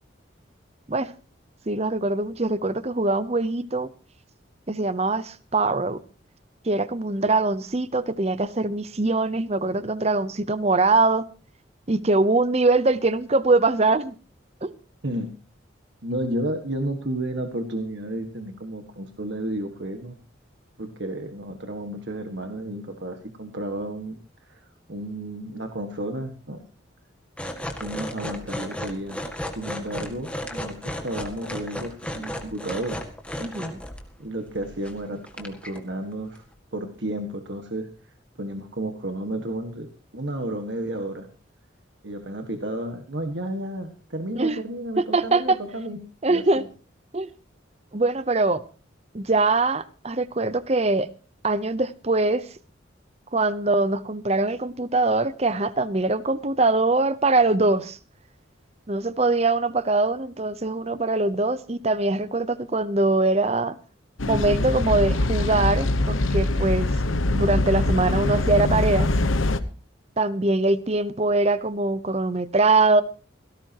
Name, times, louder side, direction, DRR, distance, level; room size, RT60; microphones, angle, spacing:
voice 1, 1.7-3.9 4.7-6.0 6.7-11.3 11.9-14.2 14.6-14.7 33.4-33.8 44.4-44.6 45.0-45.6 46.2-46.6 47.1-47.3 47.9-48.6 49.1-51.1 51.4-52.5 53.3-58.0 58.9-63.8 64.2-67.0 67.3-69.1 70.2-73.0, right 2 dB, 30° right, 0.8 m, -22 dB
voice 2, 16.0-20.2 20.8-24.2 24.5-26.6 27.8-30.8 31.0-33.0 33.5-33.6 34.2-36.4 36.7-37.9 38.4-39.9 40.1-41.3 42.0-46.0 46.2-46.7, right 1 dB, 65° right, 1.7 m, -32 dB
sound 1, 27.4-34.0 34.5-35.0 35.3-35.8 36.4-36.5, equal, 5° left, 1.9 m, -34 dB
sound 2, 64.2-69.6, left 2 dB, 90° left, 1.1 m, -23 dB
17.5 x 17.0 x 3.0 m
head